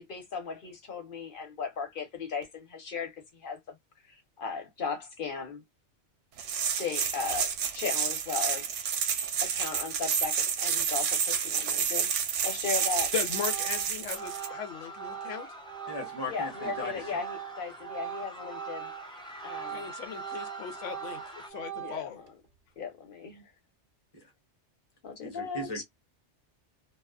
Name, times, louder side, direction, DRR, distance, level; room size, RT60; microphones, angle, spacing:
voice 1, 0.0-3.7 4.0-5.6 6.8-8.7 9.4-13.1 16.3-18.9 19.4-19.9 21.8-22.2 22.8-23.5 25.0-25.8, left 5 dB, 50° left, 1.0 m, -37 dB
sound 1, 6.4-14.5, right 7 dB, 80° right, 0.9 m, -29 dB
Organ, 12.2-12.4 12.8-19.1 19.4-22.3, right 12 dB, 55° right, 0.7 m, -41 dB
voice 2, 13.1-15.5 19.7-22.2, left 9 dB, 90° left, 0.9 m, -38 dB
sound 2, 14.1-21.5, equal, 5° left, 0.4 m, -45 dB
voice 3, 15.9-17.0 24.1-24.3 25.2-25.8, left 2 dB, 25° left, 0.8 m, -37 dB
2.4 x 2.3 x 2.3 m
omnidirectional pair, 1.2 m